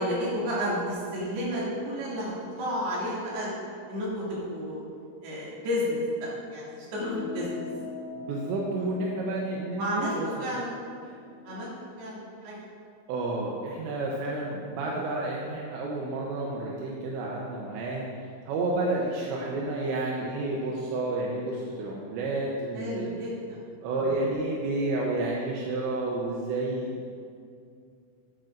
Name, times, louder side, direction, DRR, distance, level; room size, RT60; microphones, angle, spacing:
voice 1, 0.0-3.5 3.9-4.8 5.2-7.6 8.7-8.9 9.8-10.7 11.4-11.7 12.0-12.6 22.8-23.6, equal, 55° right, -7 dB, 4.1 m, -31 dB
sound 1, 6.9-11.7, left 6 dB, 75° left, 2.8 m, -42 dB
voice 2, 8.2-9.8 10.2-10.3 11.1-11.2 13.1-18.1 18.5-23.0 23.8-27.1, right 2 dB, 75° right, -3 dB, 2.8 m, -30 dB
16.0 x 8.8 x 2.6 m, 2.3 s
omnidirectional pair, 5.9 m